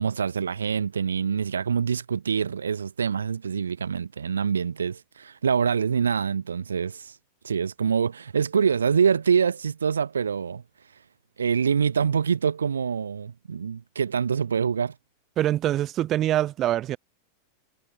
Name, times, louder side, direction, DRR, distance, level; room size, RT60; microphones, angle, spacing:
voice 1, 0.0-7.2 7.4-10.6 11.4-14.9, right 6 dB, 70° right, 1.7 m, -25 dB
voice 2, 15.4-17.0, right 13 dB, 30° right, 2.0 m, -24 dB
figure-of-eight pair, 90°, 0 cm